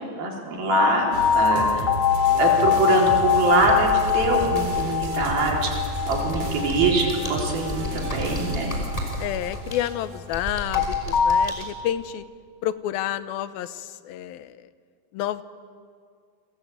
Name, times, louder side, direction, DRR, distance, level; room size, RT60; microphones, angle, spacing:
voice 1, 0.1-1.9 2.4-5.7 6.1-8.7, right 3 dB, 75° right, 0 dB, 6.0 m, -24 dB
sound 1, 0.7-9.8 10.8-11.5, left 8 dB, 60° left, 1.6 m, -23 dB
sound 2, 1.1-10.2, right 3 dB, 60° right, 4.4 m, -33 dB
Computer keyboard, 3.5-11.6, equal, 10° left, 4.7 m, -34 dB
voice 2, 9.2-12.2 12.6-14.7 15.1-15.4, left 12 dB, 80° left, 14 dB, 2.7 m, -30 dB
29.5 x 21.0 x 9.4 m, 2.1 s
omnidirectional pair, 4.2 m